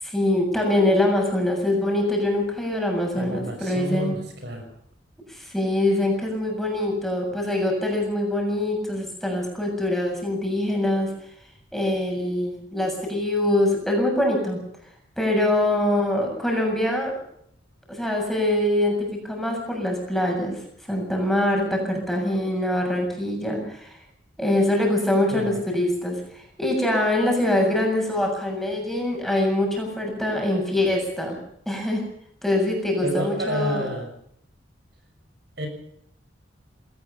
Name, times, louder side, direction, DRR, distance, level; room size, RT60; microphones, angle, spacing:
voice 1, 0.0-4.2 5.3-11.1 11.7-14.6 15.2-17.1 17.9-20.6 20.9-24.0 24.4-31.4 31.7-32.0 32.4-33.9, left 1 dB, ahead, 0 dB, 7.2 m, -24 dB
voice 2, 3.2-4.7 25.3-25.5 33.0-34.1 35.6-35.7, equal, 60° right, 5 dB, 6.2 m, -29 dB
20.5 x 19.0 x 6.8 m, 0.71 s
head